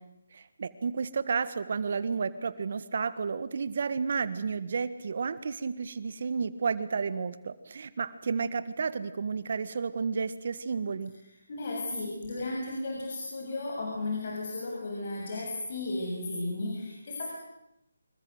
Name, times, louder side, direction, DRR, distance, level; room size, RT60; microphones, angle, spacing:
voice 1, 0.3-11.1, right 5 dB, 55° right, 14 dB, 1.6 m, -32 dB
voice 2, 11.5-17.3, left 2 dB, 50° left, -1 dB, 7.3 m, -34 dB
26.5 x 23.0 x 8.1 m, 0.84 s
figure-of-eight pair, 160°, 0 cm